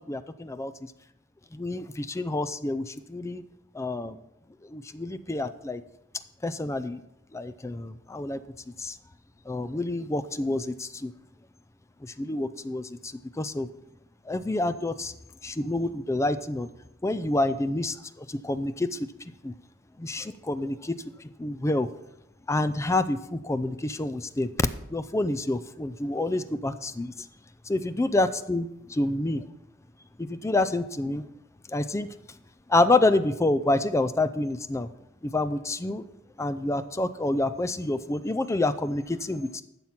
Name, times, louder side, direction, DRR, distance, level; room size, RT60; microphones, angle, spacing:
voice 1, 0.1-0.7 1.5-3.4 3.7-4.2 4.7-5.8 6.4-7.0 7.3-8.4 8.8-9.0 9.5-11.1 12.0-13.7 14.3-15.1 15.4-16.7 17.0-19.0 19.4-19.5 20.0-21.0 21.4-21.9 22.5-24.5 24.9-27.1 27.7-29.4 30.2-31.2 31.7-32.1 32.7-34.9 35.2-36.0 36.4-39.6, left 2 dB, 15° left, 12 dB, 0.4 m, -28 dB
12.0 x 7.2 x 5.7 m, 0.83 s
head